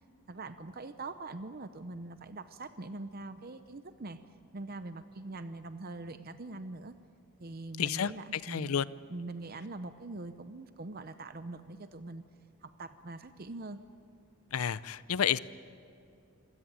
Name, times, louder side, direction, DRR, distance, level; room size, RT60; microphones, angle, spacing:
voice 1, 0.3-4.2 4.5-6.9 7.4-8.8 9.1-12.2 12.6-13.8, right 2 dB, 45° right, 11 dB, 0.7 m, -43 dB
voice 2, 7.8-8.9 14.5-15.4, left 8 dB, 80° left, 17 dB, 0.6 m, -31 dB
26.5 x 17.0 x 10.0 m, 2.5 s
head